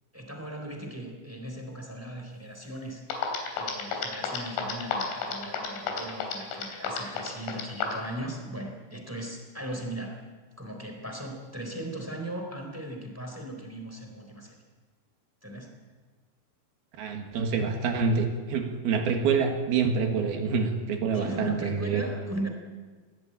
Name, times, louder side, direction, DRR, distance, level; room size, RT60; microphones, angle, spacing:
voice 1, 0.1-3.0 3.6-10.2 10.6-14.5 15.4-15.7 21.1-22.5, right 1 dB, 5° right, 2 dB, 2.9 m, -38 dB
sound 1, 2.8-2.9 3.1-8.1, left 6 dB, 85° left, 5.8 m, -31 dB
voice 2, 17.0-22.0, right 5 dB, 60° right, 4 dB, 3.3 m, -27 dB
22.5 x 17.0 x 8.9 m, 1.4 s
omnidirectional pair, 5.5 m